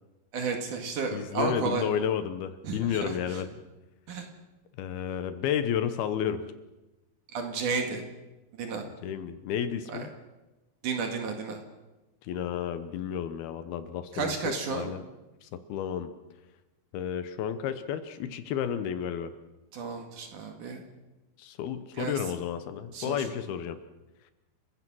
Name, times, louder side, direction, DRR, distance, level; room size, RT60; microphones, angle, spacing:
voice 1, 0.3-1.8 2.6-3.4 4.1-4.2 7.3-8.0 8.6-8.8 9.9-10.1 10.8-11.6 14.1-14.9 19.7-20.8 21.9-22.2 22.9-23.2, right 4 dB, 55° right, 4 dB, 3.1 m, -32 dB
voice 2, 1.1-3.5 4.8-6.4 9.0-10.1 12.2-15.1 15.4-16.1 16.9-19.3 21.4-23.8, left 9 dB, 75° left, 11 dB, 2.8 m, -32 dB
29.0 x 16.0 x 6.2 m, 1.1 s
omnidirectional pair, 4.7 m